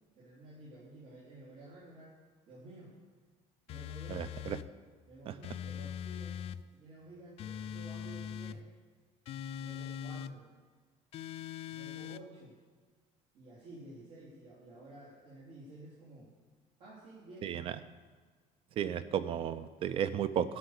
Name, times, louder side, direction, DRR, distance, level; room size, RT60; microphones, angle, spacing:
voice 1, 0.1-2.1 2.5-2.9 3.7-4.4 5.1-8.6 9.6-10.5 11.7-12.5 13.3-16.3 16.8-17.6, right 1 dB, 65° right, -8 dB, 3.5 m, -52 dB
sound 1, 3.7-4.7 5.4-6.6 7.4-8.6 9.3-10.3 11.1-12.2, left 9 dB, 50° left, 0.4 m, -41 dB
voice 2, 4.1-4.6 5.3-5.4 17.4-17.6 18.8-20.6, right 9 dB, 45° right, 14 dB, 0.4 m, -34 dB
11.5 x 6.7 x 8.2 m, 1.5 s
cardioid pair, 165°, 13 cm